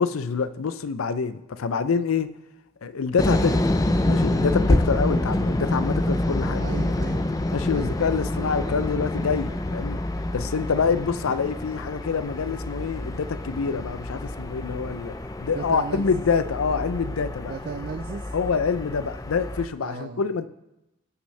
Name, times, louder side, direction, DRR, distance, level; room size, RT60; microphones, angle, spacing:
voice 1, 0.0-2.3 2.8-3.8 4.0-6.6 7.5-10.0 10.3-17.5 18.3-20.5, left 5 dB, 85° left, 0.5 m, -26 dB
sound 1, 3.2-19.7, left 1 dB, 15° left, 0.4 m, -27 dB
voice 2, 6.6-7.3 7.7-8.0 15.5-16.1 17.5-18.3 19.8-20.2, right 5 dB, 45° right, 0.4 m, -35 dB
18.5 x 6.2 x 3.3 m
head